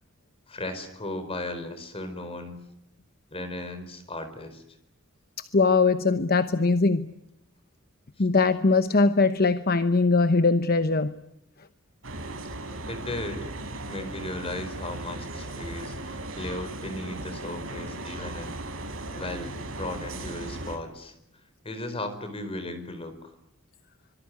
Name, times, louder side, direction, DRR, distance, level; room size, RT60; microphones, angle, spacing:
voice 1, 0.5-2.6 3.3-4.6 12.9-13.5 13.9-18.6 19.1-21.1 21.6-23.1, left 1 dB, 30° left, 9 dB, 4.6 m, -36 dB
voice 2, 5.5-7.1 8.2-11.1, left 3 dB, 50° left, 11 dB, 1.0 m, -21 dB
sound 1, 12.0-20.8, right 2 dB, 80° right, 4.6 m, -37 dB
25.5 x 23.5 x 9.6 m, 0.82 s
head